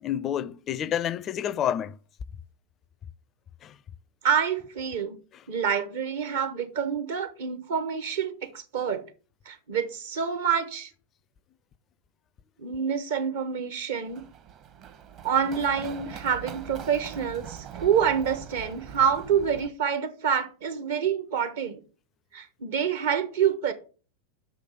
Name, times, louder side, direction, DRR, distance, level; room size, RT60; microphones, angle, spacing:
voice 1, 0.0-2.0 3.6-3.7, left 10 dB, 30° left, 0.4 m, -29 dB
voice 2, 4.2-5.2 5.5-9.0 9.4-10.9 12.6-14.2 15.2-21.8 22.3-23.7, right 7 dB, 60° right, 1.0 m, -27 dB
Run, 14.1-19.7, right 9 dB, 35° right, 0.9 m, -42 dB
6.1 x 5.0 x 5.7 m
figure-of-eight pair, 90°, 0 cm